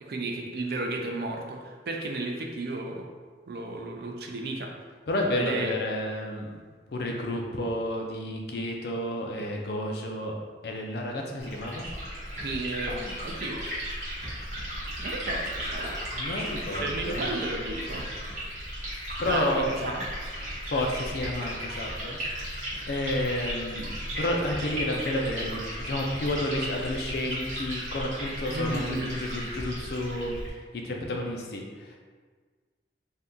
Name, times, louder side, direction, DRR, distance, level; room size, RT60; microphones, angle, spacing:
voice 1, 0.0-3.1 3.5-4.7 5.4-5.7 12.4-13.7 15.0-16.0 16.7-18.1 19.2-20.0 28.5-29.1, right 2 dB, 55° right, 1 dB, 0.4 m, -33 dB
voice 2, 5.1-6.5 6.9-10.3 10.6-11.9 16.1-17.3 19.2-19.7 20.7-22.2 22.9-32.0, left 1 dB, 60° left, 1 dB, 0.4 m, -31 dB
Liquid, 11.4-30.5, equal, 40° right, 1.0 m, -35 dB
2.7 x 2.3 x 3.5 m, 1.5 s
head